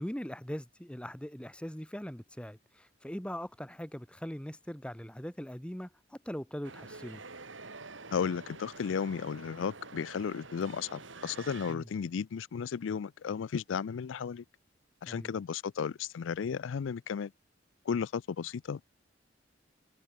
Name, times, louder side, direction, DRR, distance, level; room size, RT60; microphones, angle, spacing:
voice 1, 0.0-7.2 11.7-11.9 15.1-15.4, equal, 5° left, 1.2 m, -41 dB
sound 1, 6.6-11.7, right 3 dB, 90° right, 3.7 m, -48 dB
voice 2, 8.1-14.4 15.0-17.3 17.9-18.8, left 6 dB, 85° left, 0.4 m, -34 dB
head